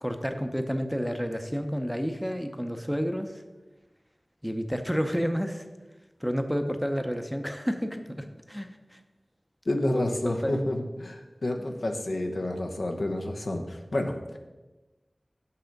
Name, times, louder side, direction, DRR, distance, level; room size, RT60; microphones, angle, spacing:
voice 1, 0.0-3.4 4.4-5.7 6.2-9.0 9.9-10.6, equal, ahead, 7 dB, 0.6 m, -30 dB
voice 2, 9.7-14.4, left 1 dB, 80° left, 3 dB, 0.8 m, -29 dB
6.1 x 5.7 x 5.2 m, 1.2 s
wide cardioid pair, 60°, 0 cm